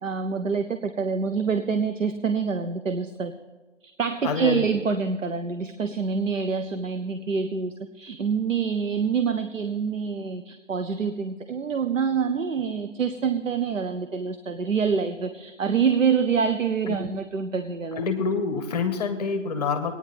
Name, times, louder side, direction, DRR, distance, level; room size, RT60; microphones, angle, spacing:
voice 1, 0.0-3.3 3.8-18.0, right 6 dB, 85° right, 9 dB, 0.7 m, -26 dB
voice 2, 4.2-4.7 16.9-17.0 18.0-19.9, left 5 dB, 30° left, 8 dB, 1.0 m, -26 dB
20.5 x 9.4 x 3.2 m, 1.3 s
figure-of-eight pair, 135°, 38 cm